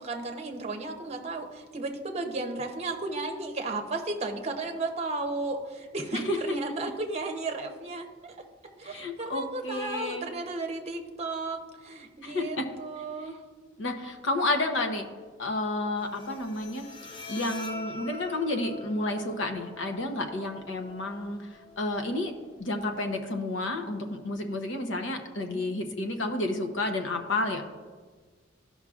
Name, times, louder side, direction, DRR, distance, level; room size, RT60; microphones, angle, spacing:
voice 1, 0.0-8.3 8.8-13.4 25.5-25.7, right 3 dB, 35° right, 3 dB, 0.8 m, -34 dB
voice 2, 8.8-10.3 12.2-12.7 13.8-15.1 15.4-16.8 17.1-22.3 22.6-27.7, left 2 dB, 65° left, 5 dB, 0.9 m, -31 dB
Bowed string instrument, 16.0-23.0, left 3 dB, 25° left, 0.8 m, -44 dB
13.5 x 5.5 x 2.4 m, 1.5 s
head